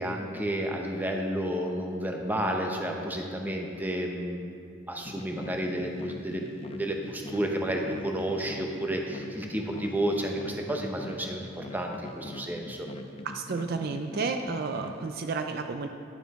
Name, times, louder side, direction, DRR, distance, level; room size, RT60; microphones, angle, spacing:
voice 1, 0.0-4.5 4.9-12.9, right 1 dB, 10° right, 1 dB, 0.7 m, -31 dB
sound 1, 5.1-15.0, left 2 dB, 30° left, 0.4 m, -42 dB
voice 2, 13.2-15.9, right 4 dB, 50° right, 6 dB, 0.4 m, -31 dB
10.5 x 7.0 x 3.6 m, 2.3 s
head